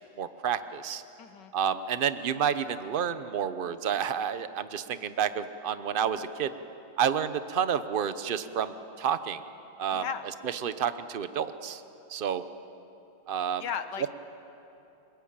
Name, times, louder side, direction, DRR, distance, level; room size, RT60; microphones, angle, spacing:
voice 1, 0.2-1.0 1.5-6.5 7.0-9.4 9.8-10.0 10.4-11.8 12.1-12.4 13.3-13.6, right 8 dB, 50° right, 11 dB, 0.6 m, -30 dB
voice 2, 1.2-1.5 9.9-10.3 13.6-14.1, left 7 dB, 65° left, 10 dB, 1.6 m, -35 dB
28.5 x 20.5 x 8.8 m, 2.9 s
omnidirectional pair, 2.1 m